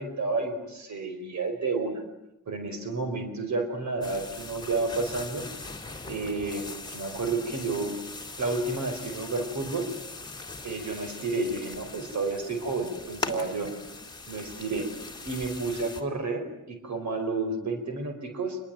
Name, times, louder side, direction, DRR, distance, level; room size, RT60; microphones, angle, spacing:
voice 1, 0.0-2.0 2.5-5.4 6.1-8.0 8.4-9.9 10.6-13.7 14.3-14.9 15.2-18.6, right 3 dB, 60° right, 6 dB, 5.0 m, -31 dB
sound 1, 4.0-16.0, left 3 dB, 15° left, 3.5 m, -40 dB
28.5 x 22.5 x 9.1 m, 0.86 s
wide cardioid pair, 170°, 32 cm